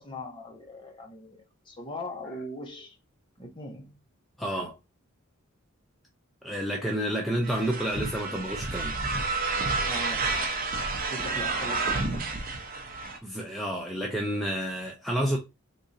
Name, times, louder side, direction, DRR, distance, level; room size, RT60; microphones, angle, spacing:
voice 1, 0.0-3.0 3.4-4.0 9.8-10.5 11.1-12.7, left 1 dB, 20° left, 0.8 m, -40 dB
voice 2, 4.4-4.8 6.4-8.9 13.2-15.4, equal, ahead, 0.4 m, -30 dB
sound 1, 7.4-13.2, right 3 dB, 40° right, 0.7 m, -30 dB
3.7 x 2.9 x 2.6 m
head